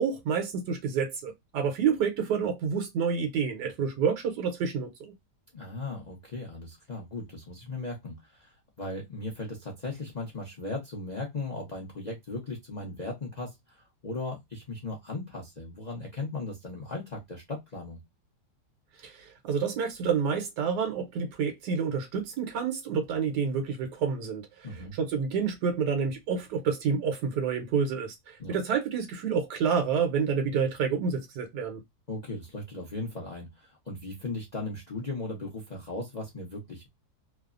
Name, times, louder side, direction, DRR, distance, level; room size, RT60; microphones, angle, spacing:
voice 1, 0.0-5.1 19.0-24.7 24.9-31.8, right 6 dB, 80° right, 1.3 m, -28 dB
voice 2, 5.5-18.0 24.6-25.0 28.4-28.5 32.1-36.9, left 2 dB, 50° left, 0.5 m, -37 dB
3.1 x 2.0 x 2.3 m
omnidirectional pair, 1.8 m